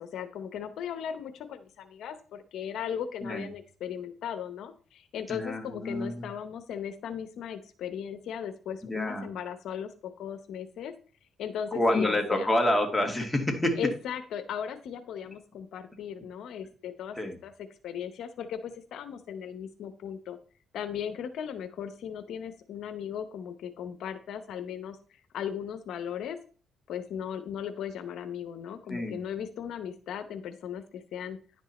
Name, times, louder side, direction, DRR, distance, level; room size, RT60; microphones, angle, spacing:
voice 1, 0.0-10.9 11.4-12.5 13.8-20.4 20.7-26.4 26.9-31.4, left 8 dB, 75° left, 9 dB, 0.8 m, -37 dB
voice 2, 5.3-6.3 8.8-9.3 11.7-13.8 17.2-17.4 28.9-29.2, left 1 dB, 5° left, 1 dB, 2.3 m, -28 dB
10.5 x 5.4 x 4.2 m, 0.40 s
cardioid pair, 90°, 0 cm